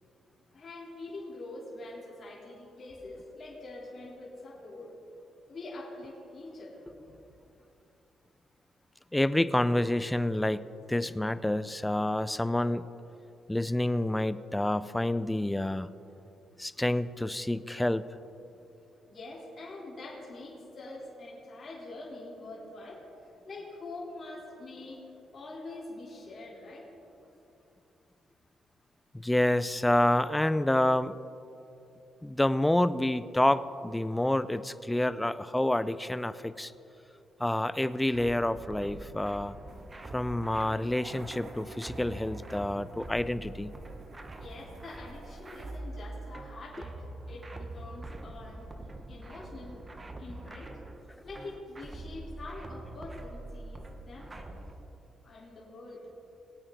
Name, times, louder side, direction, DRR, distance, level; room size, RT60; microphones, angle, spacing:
voice 1, 0.5-4.9 5.5-7.2 11.3-11.4 18.6-18.7 19.1-25.0 25.3-26.9 44.4-47.0 47.3-48.7 49.1-49.8 50.2-54.6 55.2-56.1, left 2 dB, 45° left, -6 dB, 3.5 m, -45 dB
voice 2, 9.1-12.8 13.5-15.9 16.6-18.0 29.2-31.2 32.2-36.7 37.4-39.6 40.1-43.7, left 1 dB, 10° left, 14 dB, 0.4 m, -28 dB
sound 1, 38.1-54.7, right 2 dB, 25° right, 1.0 m, -44 dB
sound 2, 39.7-45.8, right 2 dB, 55° right, 2.2 m, -52 dB
21.5 x 8.8 x 3.9 m, 2.9 s
cardioid pair, 90°, 0 cm